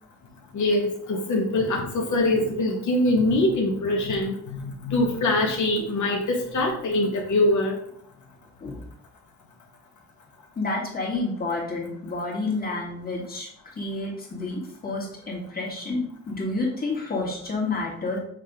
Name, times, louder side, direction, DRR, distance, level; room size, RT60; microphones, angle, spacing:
voice 1, 0.5-7.7, left 2 dB, 85° left, -1 dB, 1.3 m, -23 dB
voice 2, 10.6-13.5 13.8-18.2, left 3 dB, 30° left, -3 dB, 2.2 m, -29 dB
6.5 x 3.5 x 5.1 m, 0.69 s
cardioid pair, 105°, 29 cm